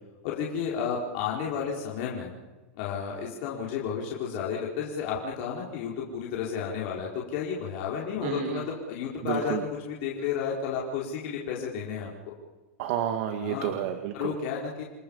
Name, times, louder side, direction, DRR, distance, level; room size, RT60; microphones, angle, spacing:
voice 1, 0.2-2.3 2.7-12.1 13.4-13.7 14.1-14.8, left 7 dB, 50° left, -3 dB, 4.6 m, -32 dB
voice 2, 8.2-8.6 9.3-9.6 12.8-14.3, right 10 dB, 55° right, 6 dB, 1.9 m, -30 dB
29.5 x 20.5 x 5.6 m, 1.2 s
supercardioid pair, 160°, 7 cm